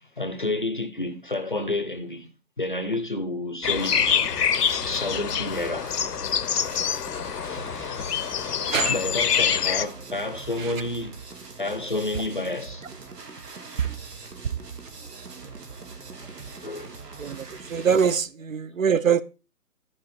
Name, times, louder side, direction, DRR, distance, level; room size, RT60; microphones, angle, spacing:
voice 1, 0.0-2.3 2.6-4.2 4.9-6.0 7.4-8.2 8.9-11.2 11.6-12.9 16.6-17.0, left 2 dB, 35° left, 0.6 m, -30 dB
sound 1, 3.6-9.9, left 8 dB, 80° left, 0.8 m, -25 dB
sound 2, 3.8-18.2, right 4 dB, 80° right, 2.2 m, -42 dB
voice 2, 17.2-19.2, right 7 dB, 55° right, 0.7 m, -24 dB
12.0 x 5.0 x 4.2 m
hypercardioid pair, 175°, 47 cm